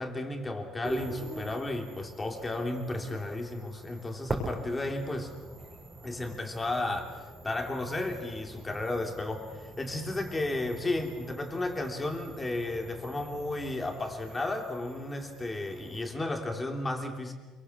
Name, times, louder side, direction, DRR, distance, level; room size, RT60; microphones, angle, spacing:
voice 1, 0.0-5.3 6.0-17.3, left 2 dB, 15° left, 3 dB, 3.1 m, -33 dB
sound 1, 0.8-16.1, right 2 dB, 15° right, 6.6 m, -44 dB
28.0 x 24.0 x 7.3 m, 1.3 s
cardioid pair, 160°, 0 cm